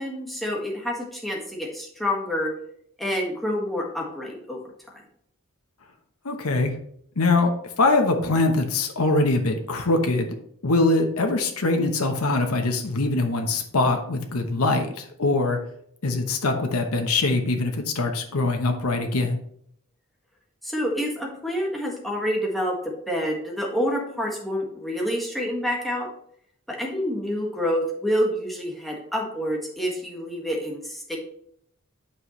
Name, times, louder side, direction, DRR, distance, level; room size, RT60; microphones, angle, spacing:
voice 1, 0.0-2.5 3.0-4.6 20.6-22.8 23.1-26.1 26.7-31.2, equal, ahead, -2 dB, 1.7 m, -27 dB
voice 2, 6.2-6.8 7.2-7.5 7.8-10.4 10.6-15.6 16.0-19.4, left 2 dB, 85° left, 4 dB, 1.0 m, -23 dB
8.7 x 5.6 x 3.2 m, 0.67 s
head